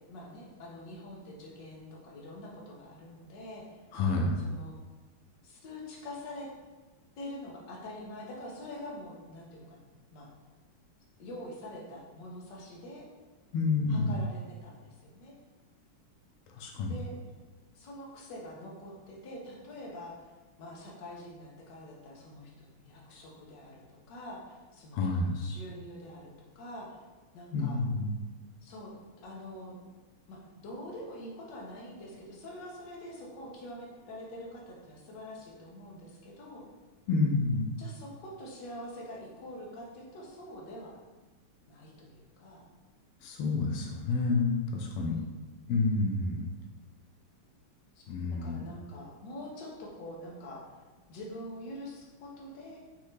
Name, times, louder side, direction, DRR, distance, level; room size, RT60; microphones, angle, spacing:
voice 1, 0.1-3.8 4.4-4.8 5.4-6.5 7.2-9.8 10.1-10.3 11.2-13.0 13.9-15.3 16.9-17.1 17.7-20.1 20.6-27.0 27.3-27.8 28.6-28.9 29.2-29.8 30.3-30.4 30.6-36.6 37.8-41.0 41.7-42.6 44.9-45.5 47.9-50.6 51.1-52.8, left 1 dB, 60° left, -3 dB, 1.5 m, -45 dB
voice 2, 3.9-4.3 13.5-14.2 16.6-16.9 24.9-25.4 27.5-28.1 37.1-37.6 43.2-45.1 45.7-46.4 48.1-48.6, left 3 dB, 90° left, 0 dB, 1.6 m, -29 dB
5.6 x 2.7 x 3.2 m, 1.2 s
omnidirectional pair, 2.4 m